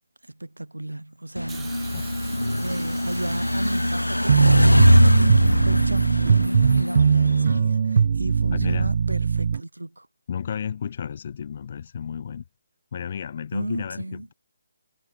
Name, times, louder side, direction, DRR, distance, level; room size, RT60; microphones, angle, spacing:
voice 1, 0.3-1.8 2.5-10.1 13.5-14.3, right 1 dB, 80° right, 1.1 m, -33 dB
sound 1, 1.4-7.6, left 1 dB, 85° left, 1.2 m, -21 dB
Hiss, 1.5-5.6 6.6-6.7, right 9 dB, 10° right, 7.5 m, -47 dB
sound 2, 4.3-9.6, right 6 dB, 45° right, 0.9 m, -20 dB
voice 2, 8.5-8.9 10.3-12.5 12.9-14.3, left 7 dB, 40° left, 1.7 m, -32 dB
figure-of-eight pair, 145°, 0 cm